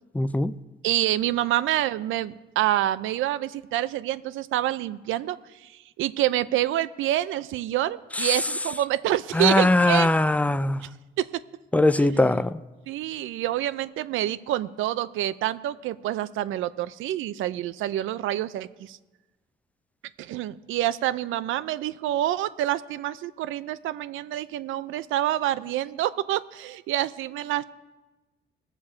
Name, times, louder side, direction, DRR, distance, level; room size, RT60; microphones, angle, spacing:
voice 1, 0.1-0.5 8.2-8.3 9.3-10.8 11.7-12.6, left 2 dB, 5° left, 15 dB, 0.4 m, -21 dB
voice 2, 0.8-10.1 10.8-10.9 11.2-11.3 12.0-12.1 12.9-19.0 20.2-27.6, right 13 dB, 85° right, 15 dB, 0.5 m, -27 dB
19.0 x 7.2 x 4.4 m, 1.2 s
cardioid pair, 90°, 20 cm